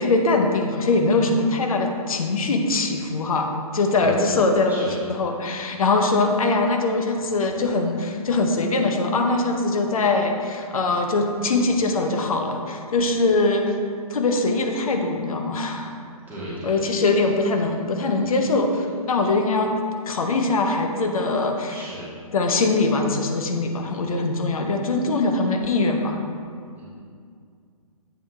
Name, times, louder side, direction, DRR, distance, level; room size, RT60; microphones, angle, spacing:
voice 1, 0.0-4.9 5.2-13.8 14.1-15.9 16.6-19.7 20.1-21.7 22.3-26.2, left 3 dB, 65° left, 4 dB, 0.8 m, -22 dB
voice 2, 3.9-4.4 4.7-5.0 16.3-17.0 18.1-18.4 21.7-22.1 26.7-26.8, right 1 dB, 10° right, -9 dB, 1.4 m, -37 dB
7.8 x 4.6 x 3.3 m, 2.2 s
hypercardioid pair, 135°, 20 cm